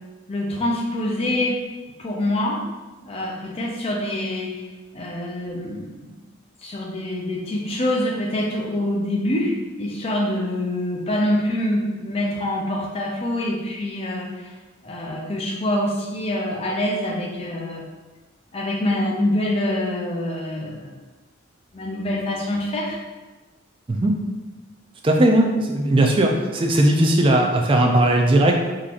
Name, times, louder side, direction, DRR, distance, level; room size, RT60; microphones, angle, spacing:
voice 1, 0.3-1.6 2.0-2.6 3.0-4.7 4.9-5.9 6.6-14.5 14.8-17.8 18.5-20.9 21.7-23.0, left 1 dB, 30° left, -2 dB, 0.5 m, -25 dB
voice 2, 25.0-28.5, right 1 dB, 25° right, 1 dB, 0.3 m, -18 dB
3.8 x 2.9 x 2.5 m, 1.2 s
head